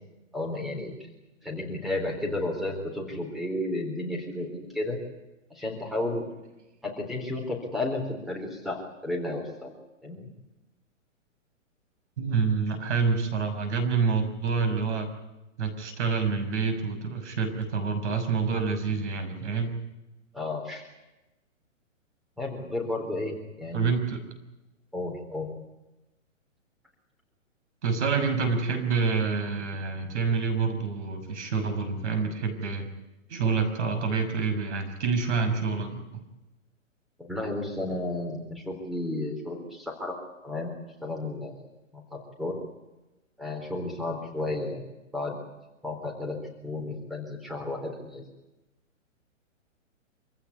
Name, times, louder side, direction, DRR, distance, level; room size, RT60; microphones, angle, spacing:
voice 1, 0.3-0.9 1.4-5.0 5.5-6.2 6.8-9.7 10.0-10.3 20.3-20.9 22.4-23.9 24.9-25.5 37.3-40.2 40.4-40.7 41.0-41.5 41.9-42.6 43.4-44.8 45.1-45.4 45.8-46.4 46.6-48.2, left 2 dB, ahead, 0 dB, 3.8 m, -32 dB
voice 2, 12.2-15.1 15.6-19.8 23.7-24.2 27.8-32.9 33.3-36.0, right 5 dB, 60° right, 8 dB, 6.2 m, -27 dB
26.5 x 16.5 x 9.7 m, 0.98 s
hypercardioid pair, 150°, 39 cm